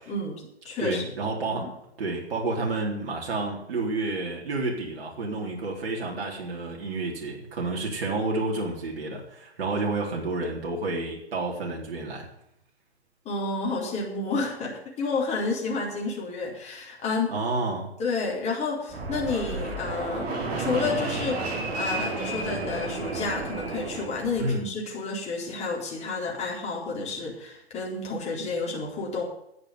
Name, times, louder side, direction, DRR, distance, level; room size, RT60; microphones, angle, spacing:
voice 1, 0.1-1.1 1.5-1.7 13.2-17.4 18.0-21.4 21.7-29.2, left 3 dB, 20° left, -2 dB, 4.2 m, -30 dB
voice 2, 0.8-1.7 2.0-12.3 17.3-17.9 24.4-24.6, right 2 dB, 60° right, -1 dB, 3.8 m, -30 dB
Fixed-wing aircraft airplane, 18.9-24.5, right 3 dB, 25° right, 3.8 m, -31 dB
10.5 x 8.5 x 9.4 m, 0.78 s
hypercardioid pair, 130°, 33 cm